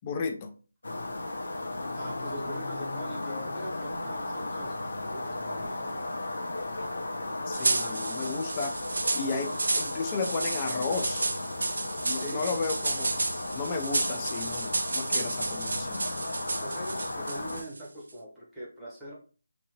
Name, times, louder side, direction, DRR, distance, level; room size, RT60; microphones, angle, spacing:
voice 1, 0.0-0.5 7.5-8.8 9.1-11.3 12.0-13.1 13.5-16.0, left 4 dB, 20° left, 5 dB, 0.3 m, -33 dB
sound 1, 0.8-17.6, left 2 dB, 75° left, 0.7 m, -35 dB
voice 2, 1.9-4.8 5.0-6.0 12.2-12.5 16.6-19.1, equal, ahead, -8 dB, 0.9 m, -42 dB
sound 2, 7.5-17.8, right 3 dB, 70° right, 0.5 m, -32 dB
3.0 x 2.6 x 2.8 m, 0.37 s
figure-of-eight pair, 175°, 0 cm